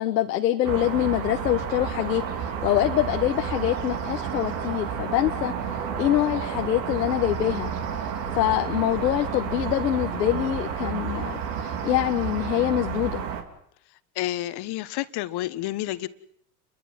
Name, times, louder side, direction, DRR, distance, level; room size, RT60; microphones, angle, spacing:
voice 1, 0.0-5.5 6.0-7.7 8.0-13.2, left 12 dB, 90° left, 4 dB, 1.4 m, -25 dB
sound 1, 0.6-13.4, right 7 dB, 80° right, 3.4 m, -31 dB
voice 2, 14.1-16.1, left 15 dB, 50° left, 13 dB, 1.5 m, -29 dB
29.5 x 23.0 x 5.9 m, 0.68 s
hypercardioid pair, 90°, 49 cm